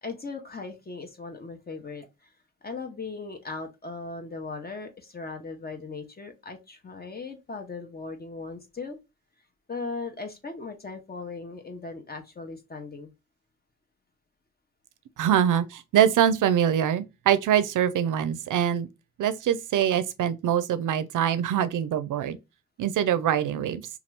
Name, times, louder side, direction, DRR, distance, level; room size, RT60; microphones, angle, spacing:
voice 1, 0.0-2.3 2.6-9.0 9.7-13.1, left 3 dB, 30° left, 0.7 m, -38 dB
voice 2, 15.2-18.9 19.2-22.4 22.8-23.8, right 9 dB, 70° right, 0.5 m, -24 dB
2.8 x 2.3 x 3.2 m
supercardioid pair, 45°, 32 cm